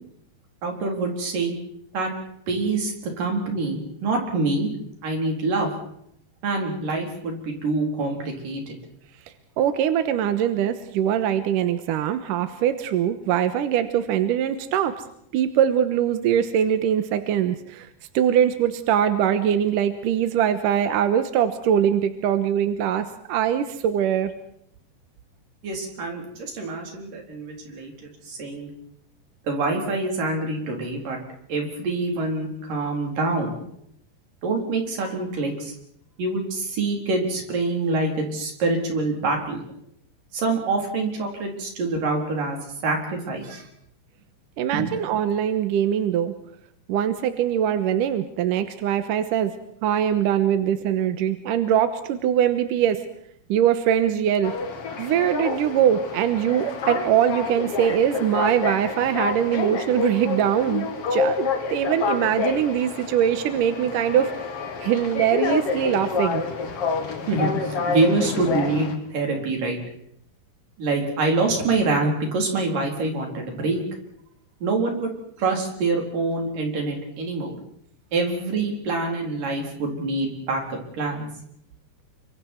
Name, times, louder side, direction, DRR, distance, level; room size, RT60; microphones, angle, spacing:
voice 1, 0.6-1.6 1.9-2.1 2.5-4.7 5.0-5.7 6.4-8.7 25.6-28.7 29.4-31.2 31.5-33.6 34.4-35.8 36.2-39.6 40.3-43.7 44.7-44.9 67.2-69.8 70.8-73.8 74.6-75.1 75.4-77.6 78.1-81.3, right 3 dB, 50° right, 1 dB, 5.5 m, -26 dB
voice 2, 9.6-14.9 15.3-17.9 18.1-24.3 44.6-46.3 46.9-49.5 49.8-53.0 53.5-54.5 55.0-60.9 61.1-64.3 64.8-66.4, right 9 dB, 70° right, 9 dB, 2.2 m, -22 dB
sound 1, 54.4-68.9, left 4 dB, 45° left, 2.4 m, -28 dB
30.0 x 25.0 x 4.6 m, 0.70 s
omnidirectional pair, 5.0 m